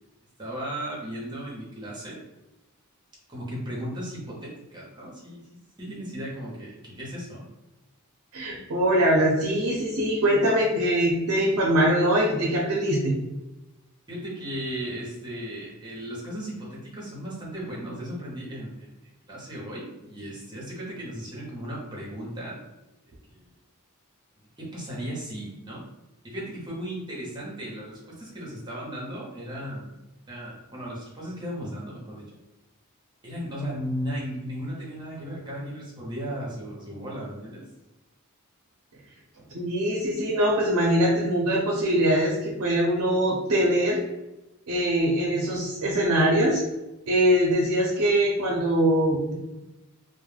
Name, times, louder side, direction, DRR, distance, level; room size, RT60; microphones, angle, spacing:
voice 1, 0.4-2.2 3.3-5.5 5.8-7.4 14.1-18.9 19.2-22.6 23.3-23.4 24.6-25.8 26.2-29.9 30.2-32.2 33.2-37.6, equal, 20° right, -5 dB, 0.8 m, -36 dB
voice 2, 8.3-13.1 39.5-44.0 44.7-46.6 47.1-49.3, right 1 dB, 80° right, -1 dB, 0.5 m, -22 dB
2.3 x 2.1 x 3.2 m, 0.99 s
head